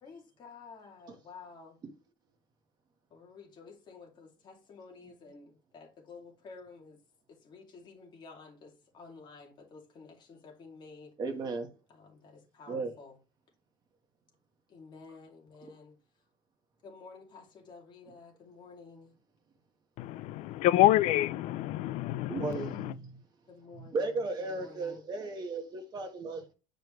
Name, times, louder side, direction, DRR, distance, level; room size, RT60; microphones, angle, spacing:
voice 1, 0.0-1.8 3.1-7.0 7.3-11.1 11.9-13.2 14.7-16.2 16.8-19.1 23.5-25.0, left 4 dB, 30° left, 2.3 m, -51 dB
voice 2, 11.2-11.7 12.7-12.9 22.3-23.2 23.7-26.5, right 3 dB, 30° right, 1.4 m, -35 dB
voice 3, 20.0-22.9, left 15 dB, 50° left, 0.4 m, -27 dB
8.9 x 5.1 x 3.1 m
cardioid pair, 170°, 15 cm